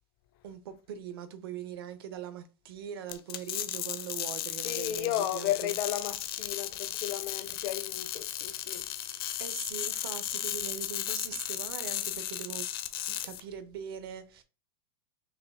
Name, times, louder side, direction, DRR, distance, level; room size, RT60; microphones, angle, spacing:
voice 1, 0.4-5.8 9.4-12.7 13.1-14.4, right 8 dB, 75° right, 0.8 m, -41 dB
sound 1, 3.1-13.4, left 12 dB, 75° left, 0.7 m, -35 dB
voice 2, 4.6-8.8, left 12 dB, 35° left, 0.4 m, -34 dB
5.7 x 2.3 x 3.5 m
supercardioid pair, 170°, 13 cm